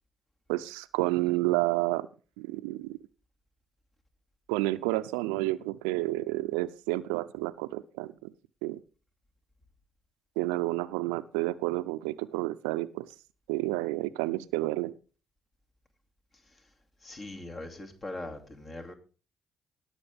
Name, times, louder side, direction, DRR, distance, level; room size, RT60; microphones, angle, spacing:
voice 1, 0.5-2.1 2.4-3.0 4.5-8.3 8.6-8.8 10.4-13.1 13.5-14.9, right 19 dB, 80° right, 15 dB, 0.5 m, -30 dB
voice 2, 17.0-18.9, left 2 dB, 40° left, 4 dB, 2.5 m, -41 dB
18.5 x 6.5 x 3.5 m, 0.35 s
hypercardioid pair, 45°, 0 cm